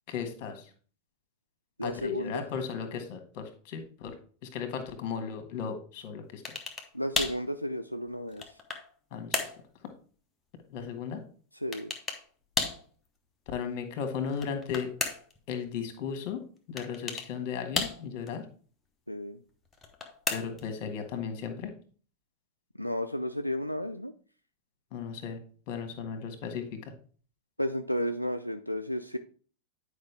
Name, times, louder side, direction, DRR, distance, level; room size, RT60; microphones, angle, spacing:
voice 1, 0.1-0.7 1.8-4.1 4.4-6.4 9.1-9.5 9.8-9.9 10.7-11.2 13.5-14.9 15.5-16.4 16.7-18.4 20.3-21.7 24.9-25.4 25.7-26.9, left 6 dB, 40° left, 6 dB, 1.6 m, -35 dB
voice 2, 1.8-2.4 6.9-8.6 11.6-11.9 19.1-19.4 22.7-24.1 27.6-29.2, equal, 90° left, 8 dB, 0.3 m, -33 dB
sound 1, 6.5-6.9 7.2-7.4 8.1-8.9 9.3-9.6 11.7-12.2 12.6-12.9 14.3-15.4 16.8-17.3 17.8-18.3 19.7-20.7, left 4 dB, 15° left, 1.1 m, -33 dB
9.5 x 5.0 x 3.4 m, 0.41 s
figure-of-eight pair, 90°, 0 cm